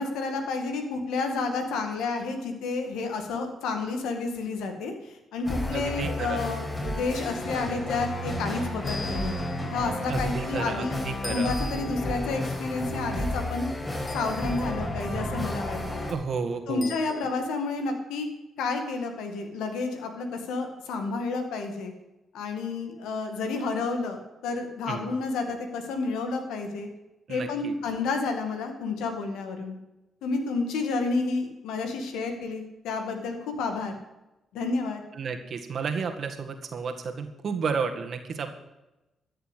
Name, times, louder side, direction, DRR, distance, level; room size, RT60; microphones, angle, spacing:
voice 1, 0.0-9.3 9.7-13.7 14.1-16.1 16.7-18.3 18.6-21.9 22.3-26.9 27.3-29.8 30.2-33.9 34.5-35.0, left 3 dB, 85° left, 5 dB, 1.9 m, -30 dB
sound 1, 5.4-16.1, left 1 dB, 30° left, 5.2 m, -32 dB
voice 2, 5.7-6.4 10.1-11.5 16.0-17.3 24.9-25.1 27.3-27.7 35.1-38.5, right 5 dB, 60° right, 5 dB, 1.8 m, -32 dB
sound 2, 8.8-9.7 11.2-12.1 14.1-14.8 16.8-17.5, left 3 dB, 45° left, 2.1 m, -41 dB
13.5 x 6.9 x 8.3 m, 0.98 s
supercardioid pair, 55°, 0 cm